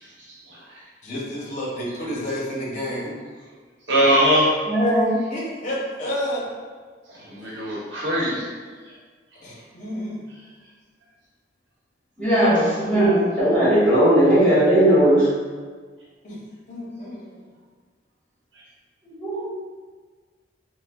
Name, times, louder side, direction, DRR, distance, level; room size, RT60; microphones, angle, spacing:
voice 1, 1.0-3.1 5.1-6.5 7.4-7.6 9.4-10.2 16.2-16.4 16.7-17.4, equal, 45° left, -4 dB, 0.7 m, -30 dB
voice 2, 3.9-4.5 7.1-8.5, equal, 75° right, -5 dB, 0.9 m, -20 dB
voice 3, 4.7-5.1 12.2-15.3 19.2-19.5, right 1 dB, 5° left, -12 dB, 1.5 m, -17 dB
4.6 x 2.1 x 2.3 m, 1.5 s
head